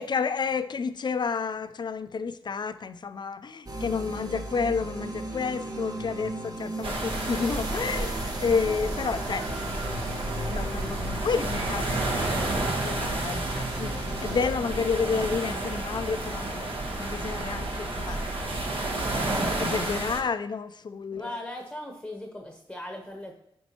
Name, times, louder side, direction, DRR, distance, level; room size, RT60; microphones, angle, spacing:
voice 1, 0.0-9.4 10.4-16.7 17.0-18.2 18.7-18.8 19.1-21.4, left 5 dB, 50° left, 12 dB, 0.4 m, -30 dB
sound 1, 3.7-14.5, right 1 dB, 40° right, 1.0 m, -36 dB
sound 2, 6.8-20.2, right 2 dB, 65° right, 1.2 m, -31 dB
voice 2, 21.2-23.4, left 1 dB, 10° left, 2 dB, 0.9 m, -38 dB
9.7 x 4.4 x 2.9 m, 0.77 s
cardioid pair, 70°, 10 cm